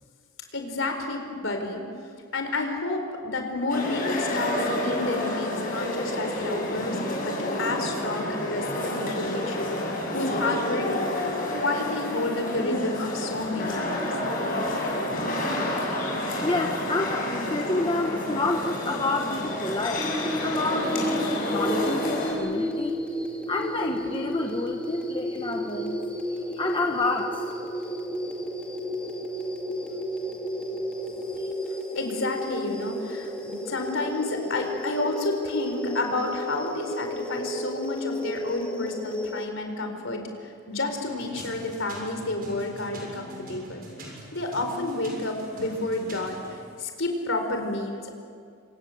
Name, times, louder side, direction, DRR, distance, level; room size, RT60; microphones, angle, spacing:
voice 1, 0.5-1.8 2.3-9.8 10.1-10.9 11.1-14.1 31.9-43.9 44.3-48.2, left 2 dB, 60° left, 5 dB, 4.7 m, -30 dB
sound 1, 3.7-22.3, left 1 dB, 40° left, 7.5 m, -29 dB
voice 2, 15.5-16.0 16.4-23.0 23.5-26.0 26.5-27.4 31.3-31.5, left 2 dB, 20° left, 2 dB, 1.3 m, -29 dB
sound 2, 20.0-39.5, equal, 5° left, 2.5 m, -32 dB
sound 3, 40.9-46.6, right 1 dB, 40° right, 7.0 m, -43 dB
27.5 x 27.0 x 8.0 m, 2.3 s
head